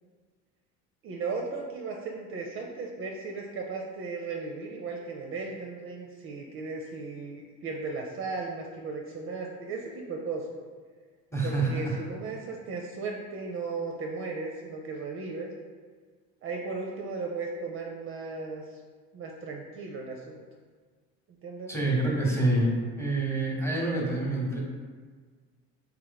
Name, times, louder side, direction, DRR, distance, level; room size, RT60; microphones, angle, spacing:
voice 1, 1.0-10.5 11.4-15.5 16.4-18.8 19.1-20.4 21.4-21.7, right 4 dB, 40° right, 1 dB, 0.5 m, -36 dB
voice 2, 11.3-12.0 21.7-24.6, right 2 dB, 10° left, -3 dB, 0.9 m, -27 dB
3.0 x 2.9 x 3.9 m, 1.5 s
supercardioid pair, 105°, 33 cm